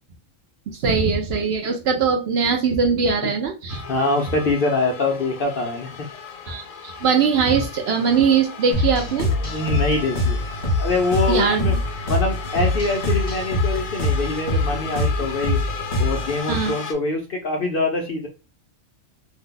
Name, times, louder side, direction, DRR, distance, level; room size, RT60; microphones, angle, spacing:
voice 1, 0.7-3.8 6.5-9.3 11.3-11.8 16.5-16.7, right 5 dB, 65° right, 3 dB, 0.7 m, -21 dB
sound 1, 3.7-16.9, left 6 dB, 90° left, 1.0 m, -35 dB
voice 2, 3.9-6.1 9.4-10.4 10.8-11.8 12.1-15.6 16.0-18.3, left 3 dB, 55° left, 2 dB, 0.7 m, -24 dB
sound 2, 8.7-16.4, left 1 dB, 40° left, 1.2 m, -24 dB
2.7 x 2.2 x 3.7 m, 0.30 s
omnidirectional pair, 1.4 m